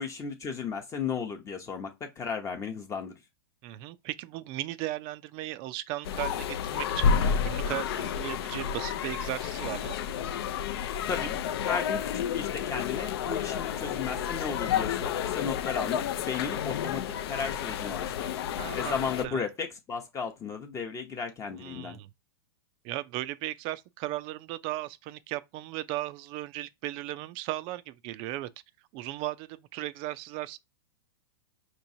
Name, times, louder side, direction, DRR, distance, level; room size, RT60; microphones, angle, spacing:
voice 1, 0.0-3.2 11.1-11.4 11.6-18.4 18.7-22.0, left 6 dB, 20° left, 0.7 m, -35 dB
voice 2, 3.6-10.0 16.6-16.7 18.6-19.0 19.2-19.4 21.6-22.1 22.8-28.5 28.9-30.6, right 15 dB, 40° right, 0.4 m, -36 dB
sound 1, 6.0-19.3, left 8 dB, 70° left, 0.5 m, -30 dB
4.6 x 3.0 x 2.6 m
hypercardioid pair, 125°, 14 cm